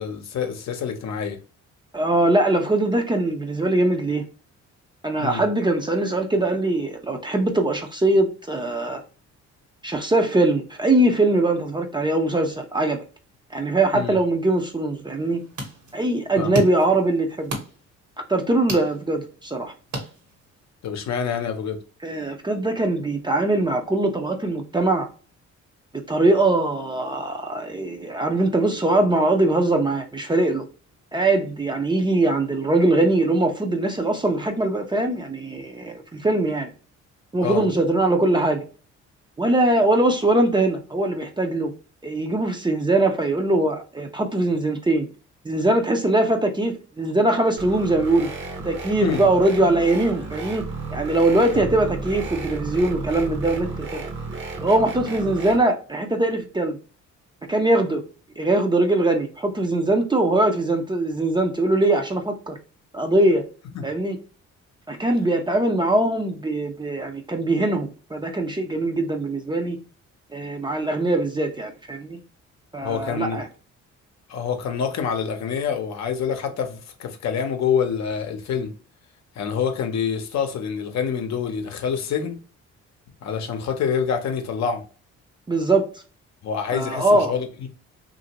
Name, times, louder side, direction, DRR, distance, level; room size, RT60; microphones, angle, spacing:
voice 1, 0.0-1.4 5.2-5.4 13.9-14.2 16.4-16.6 20.8-21.8 37.4-37.6 49.0-49.3 51.5-51.7 63.7-63.9 72.8-73.4 74.3-78.7 79.4-82.4 83.2-84.8 86.4-87.7, left 7 dB, 60° left, 0.7 m, -26 dB
voice 2, 1.9-4.2 5.0-9.0 9.8-13.0 13.5-15.4 15.9-17.5 18.3-19.7 22.0-25.1 25.9-30.6 31.1-36.7 37.3-38.7 39.4-41.7 42.0-45.1 45.4-48.3 48.6-50.6 50.9-54.1 54.6-56.8 57.5-58.0 58.4-62.6 62.9-63.4 63.8-64.2 64.9-69.8 70.3-72.2 72.7-73.4 85.5-85.8 86.7-87.3, right 2 dB, 15° right, 0.5 m, -21 dB
sound 1, 15.1-20.7, right 1 dB, 75° right, 1.3 m, -35 dB
sound 2, 47.6-55.6, right 3 dB, 40° right, 0.8 m, -33 dB
2.8 x 2.6 x 2.8 m
cardioid pair, 90°, 30 cm